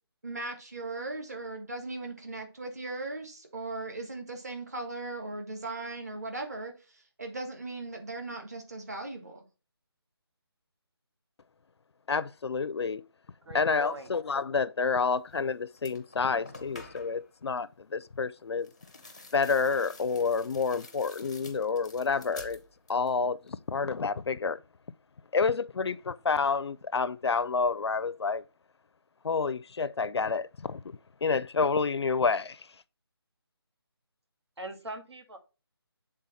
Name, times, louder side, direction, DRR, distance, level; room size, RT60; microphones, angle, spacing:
voice 1, 0.2-9.4, right 2 dB, 40° right, 1.4 m, -38 dB
voice 2, 12.1-13.0 13.5-18.7 19.3-22.6 22.9-24.6 25.3-28.4 29.2-30.8 31.2-32.7, left 5 dB, 80° left, 0.4 m, -29 dB
voice 3, 13.4-14.1 34.6-35.4, right 2 dB, 85° right, 1.7 m, -42 dB
sound 1, 15.3-15.5 15.8-17.3 18.6-23.2 23.5-24.1, left 2 dB, 15° left, 0.5 m, -50 dB
7.7 x 3.7 x 4.0 m
figure-of-eight pair, 180°, 14 cm